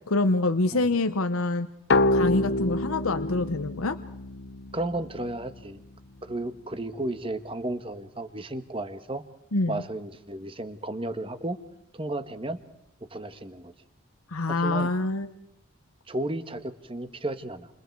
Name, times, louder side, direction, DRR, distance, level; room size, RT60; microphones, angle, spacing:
voice 1, 0.1-1.7 2.1-4.0 9.5-9.8 14.3-15.3, left 2 dB, 85° left, 9 dB, 1.0 m, -26 dB
sound 1, 1.9-5.4, left 2 dB, 55° left, 0.9 m, -27 dB
voice 2, 4.7-5.8 6.2-9.2 9.7-11.6 11.9-12.6 13.1-13.7 14.5-14.9 16.1-17.7, right 1 dB, 25° right, 10 dB, 1.5 m, -33 dB
29.0 x 29.0 x 4.7 m, 0.75 s
head